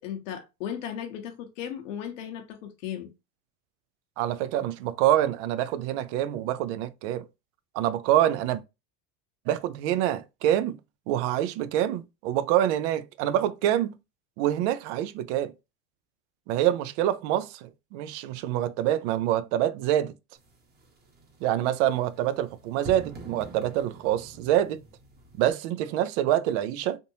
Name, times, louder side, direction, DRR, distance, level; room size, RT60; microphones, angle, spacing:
voice 1, 0.0-3.1, left 9 dB, 85° left, 1.1 m, -36 dB
voice 2, 4.2-7.3 7.7-8.6 9.5-10.8 11.1-13.9 14.4-15.5 16.5-20.1 21.4-24.8 25.3-27.0, right 12 dB, 70° right, 0.6 m, -26 dB
sound 1, 20.4-25.5, right 2 dB, 25° right, 1.1 m, -46 dB
3.7 x 2.7 x 2.7 m
supercardioid pair, 115°, 37 cm